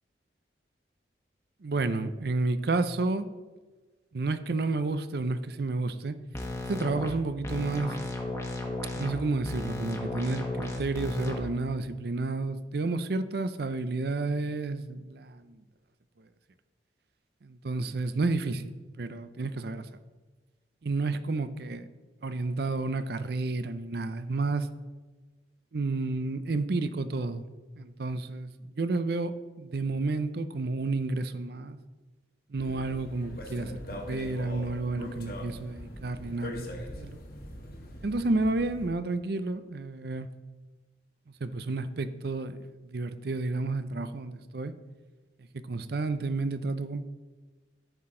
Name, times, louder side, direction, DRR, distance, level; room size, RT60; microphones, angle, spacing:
voice 1, 1.6-3.3 4.1-6.2 6.7-8.0 8.9-15.5 17.4-19.9 20.8-21.8 22.2-24.7 25.7-27.4 27.8-29.3 29.6-31.8 32.5-37.2 38.0-40.3 41.4-42.6 42.8-44.7 45.5-47.0, right 3 dB, 55° right, 12 dB, 0.5 m, -31 dB
sound 1, 6.3-7.1 7.4-9.2 9.4-11.4, left 2 dB, 15° left, 1.2 m, -34 dB
sound 2, 32.6-38.9, left 1 dB, 50° left, 1.4 m, -42 dB
13.5 x 5.9 x 3.8 m, 1.3 s
head